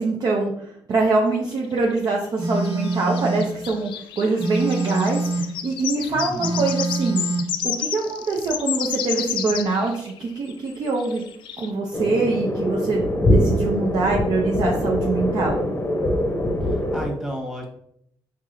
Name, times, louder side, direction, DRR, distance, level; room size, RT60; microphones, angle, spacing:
voice 1, 0.0-7.3 7.6-11.2 11.6-15.6, right 3 dB, 55° right, -1 dB, 0.6 m, -24 dB
sound 1, 1.0-2.0 2.6-10.2 10.5-11.7, left 9 dB, 75° left, 0.4 m, -31 dB
Telephone, 2.4-3.5 4.4-5.5 6.4-7.5, right 2 dB, 80° right, 1.2 m, -25 dB
voice 2, 6.1-6.7 16.6-17.7, equal, 5° right, 0 dB, 1.1 m, -33 dB
sound 2, 11.9-17.1, left 1 dB, 30° left, 0.7 m, -23 dB
4.7 x 2.7 x 2.5 m, 0.73 s
cardioid pair, 80°, 8 cm